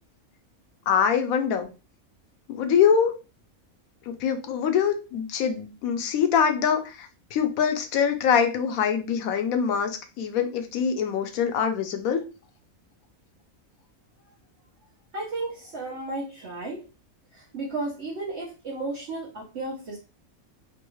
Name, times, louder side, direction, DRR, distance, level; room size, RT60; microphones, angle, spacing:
voice 1, 0.9-1.7 2.5-3.2 4.1-12.2, left 7 dB, 90° left, 6 dB, 1.1 m, -24 dB
voice 2, 15.1-16.8 17.3-20.0, right 2 dB, 55° right, -3 dB, 1.0 m, -33 dB
3.3 x 2.3 x 3.0 m, 0.31 s
omnidirectional pair, 1.5 m